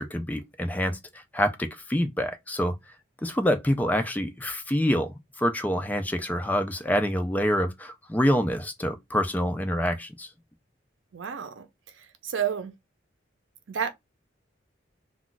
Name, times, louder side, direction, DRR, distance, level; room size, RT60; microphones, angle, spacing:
voice 1, 0.0-2.8 3.2-10.3, equal, 10° left, 0.4 m, -26 dB
voice 2, 11.1-12.7 13.7-13.9, right 8 dB, 90° right, 0.5 m, -31 dB
2.3 x 2.3 x 3.8 m
head